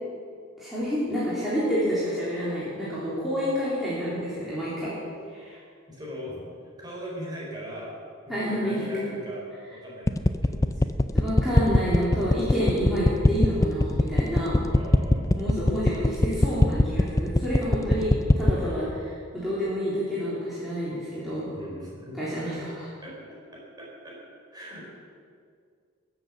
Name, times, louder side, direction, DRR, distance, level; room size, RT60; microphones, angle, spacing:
voice 1, 0.6-5.0 5.3-5.6 8.3-9.1 11.1-14.6 15.4-21.5 22.2-22.8, equal, ahead, -11 dB, 3.5 m, -28 dB
voice 2, 5.9-6.5 6.8-7.9 8.3-9.4 9.7-11.3 14.1-14.4 14.7-15.5 18.4-18.7 21.5-22.6 23.0-23.2 23.5-24.2 24.5-24.9, equal, 20° right, -5 dB, 4.7 m, -40 dB
sound 1, 10.1-18.6, left 1 dB, 15° left, 0.4 m, -20 dB
21.5 x 8.0 x 7.3 m, 2.1 s
head